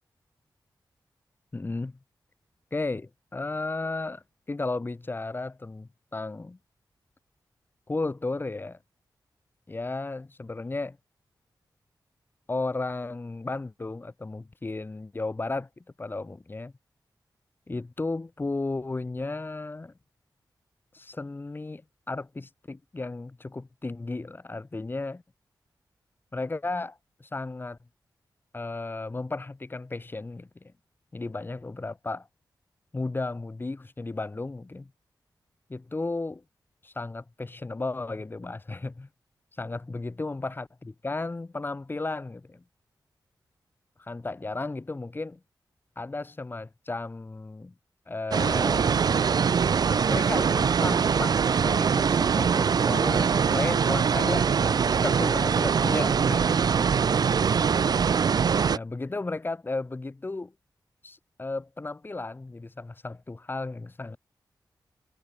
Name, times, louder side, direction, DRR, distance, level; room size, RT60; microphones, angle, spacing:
voice 1, 1.5-2.0 2.7-6.6 7.9-8.8 9.7-11.0 12.5-16.7 17.7-19.9 20.9-25.2 26.3-27.8 28.5-30.7 31.1-32.3 32.9-34.9 35.7-36.4 36.8-39.1 39.6-42.6 44.0-45.4 45.9-47.7 48.1-48.9 50.1-56.6 58.7-60.5 61.0-64.2, left 3 dB, 25° left, 3.4 m, -34 dB
sound 1, 48.3-58.8, right 6 dB, 60° right, 0.5 m, -23 dB
wide cardioid pair, 125°, 8 cm